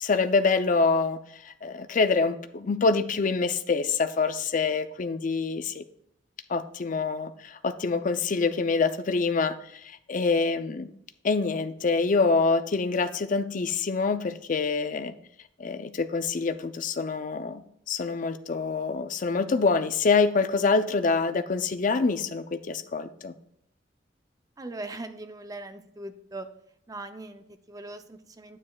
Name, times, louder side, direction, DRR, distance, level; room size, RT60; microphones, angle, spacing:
voice 1, 0.0-5.8 6.5-10.9 11.2-15.1 15.6-23.3, left 4 dB, 45° left, 10 dB, 0.5 m, -26 dB
voice 2, 24.6-26.5 26.9-28.6, right 2 dB, 20° right, 9 dB, 0.5 m, -40 dB
9.8 x 8.9 x 2.3 m, 0.72 s
head